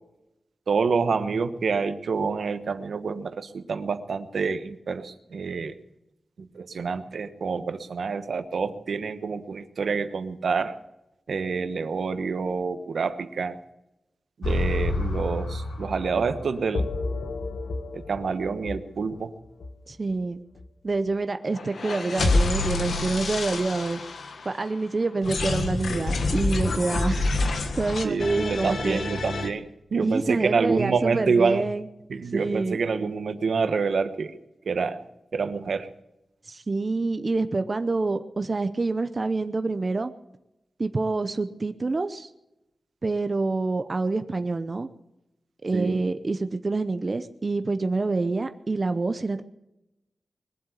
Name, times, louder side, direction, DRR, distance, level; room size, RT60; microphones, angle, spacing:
voice 1, 0.7-5.8 6.4-10.8 11.3-13.6 14.4-16.9 17.9-19.3 28.0-29.6 29.9-31.6 32.1-34.3 34.6-35.0 35.3-35.9 45.7-46.0, right 5 dB, 80° right, 10 dB, 1.1 m, -27 dB
sound 1, 14.4-19.2 19.6-19.7 20.1-20.2 20.6-20.7 21.5-24.8 25.2-29.5, left 2 dB, 85° left, 1.5 m, -28 dB
voice 2, 19.9-20.4 20.8-24.0 24.4-27.3 27.7-29.0 30.0-31.9 32.3-32.8 36.5-40.1 40.8-42.3 43.0-44.9 45.6-49.4, right 3 dB, 35° right, 9 dB, 0.7 m, -27 dB
21.5 x 7.8 x 8.2 m, 0.90 s
wide cardioid pair, 140°, 0 cm